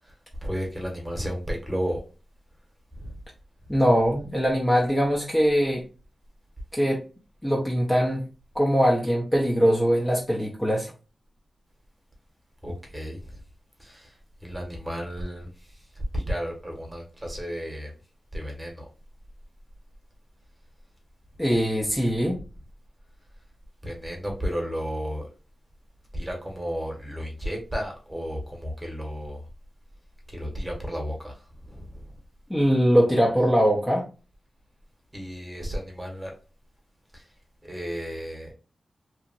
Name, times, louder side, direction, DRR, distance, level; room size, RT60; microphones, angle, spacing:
voice 1, 0.0-2.0 2.9-3.2 12.6-13.4 13.8-18.0 18.3-18.8 23.8-25.3 26.1-29.5 30.3-32.2 35.1-36.3 37.1-37.3 37.6-38.5, equal, 15° right, 1.1 m, -33 dB
voice 2, 3.7-5.8 6.7-7.0 7.4-8.2 8.5-10.9 21.4-22.4 32.5-34.1, equal, 15° left, 0.7 m, -22 dB
2.9 x 2.4 x 2.5 m
wide cardioid pair, 100°, 0 cm